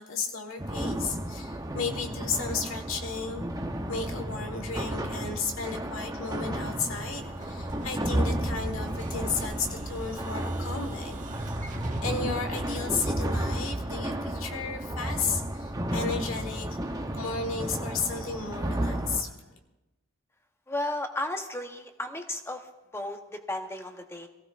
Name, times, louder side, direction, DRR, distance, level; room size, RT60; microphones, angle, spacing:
voice 1, 0.0-3.4 3.9-11.2 12.0-16.7 17.1-19.5, left 5 dB, 80° left, 5 dB, 1.5 m, -34 dB
sound 1, 0.6-19.2, right 1 dB, 15° right, 0.7 m, -32 dB
Explosion, 7.1-15.7, right 1 dB, 35° right, 1.4 m, -45 dB
voice 2, 20.7-22.6 22.9-24.3, left 1 dB, 10° left, 6 dB, 0.9 m, -34 dB
22.5 x 16.0 x 2.5 m, 1.0 s
head